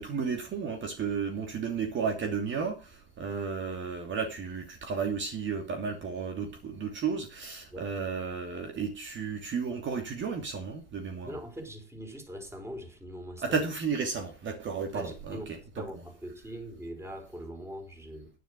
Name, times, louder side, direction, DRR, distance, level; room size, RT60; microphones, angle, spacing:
voice 1, 0.0-11.3 13.4-16.0, right 5 dB, 40° right, 2.8 m, -33 dB
voice 2, 11.2-13.6 14.9-15.5 15.7-18.3, equal, 10° right, 4.9 m, -42 dB
11.0 x 10.5 x 6.0 m
hypercardioid pair, 95°, 31 cm